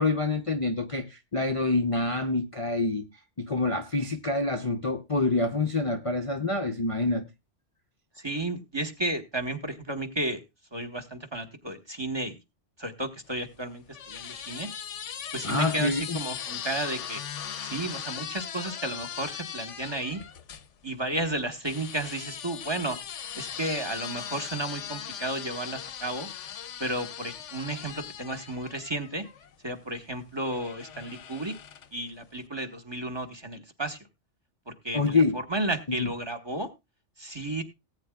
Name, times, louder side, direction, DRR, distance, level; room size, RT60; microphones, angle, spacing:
voice 1, 0.0-3.1 3.4-7.3 15.4-16.2 34.9-35.4 36.0-36.1, left 3 dB, 35° left, 0.7 m, -26 dB
voice 2, 8.2-10.4 10.7-12.4 12.8-14.7 15.3-17.2 17.6-20.2 20.8-23.0 23.3-26.3 26.8-29.3 29.6-31.5 31.9-34.0 34.7-36.7 37.2-37.6, right 2 dB, 25° right, 1.2 m, -33 dB
sound 1, 13.3-20.7 21.6-29.6 30.4-32.0, left 9 dB, 85° left, 1.1 m, -39 dB
18.5 x 8.9 x 2.3 m
omnidirectional pair, 1.2 m